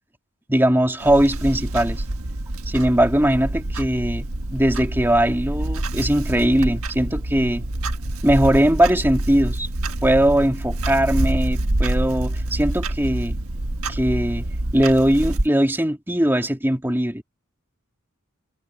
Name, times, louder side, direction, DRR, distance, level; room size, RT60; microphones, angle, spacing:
voice 1, 0.5-2.0 2.7-4.3 4.5-7.6 8.2-9.7 10.0-13.4 13.9-17.2, right 1 dB, 10° right, 2.5 m, -20 dB
Clock, 1.0-15.5, right 1 dB, 80° right, 1.5 m, -26 dB
head